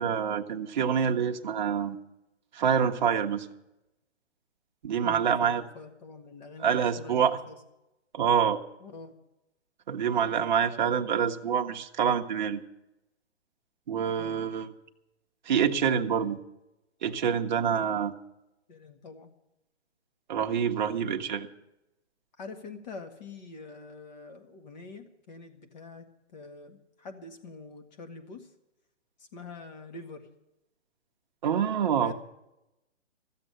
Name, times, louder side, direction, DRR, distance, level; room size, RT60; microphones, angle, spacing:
voice 1, 0.0-2.0 2.5-3.5 4.8-5.6 6.6-7.3 8.1-8.6 9.9-12.6 13.9-14.7 15.5-16.4 17.0-18.1 20.3-21.5 31.4-32.1, right 7 dB, 40° right, 5 dB, 1.0 m, -26 dB
voice 2, 5.0-7.6 8.8-9.2 14.2-14.5 17.8-17.9 18.7-19.3 21.0-21.2 22.4-26.1 26.3-28.5 29.2-30.3 31.9-32.1, left 3 dB, 35° left, 6 dB, 1.8 m, -45 dB
14.5 x 7.7 x 9.8 m, 0.91 s
hypercardioid pair, 165°, 36 cm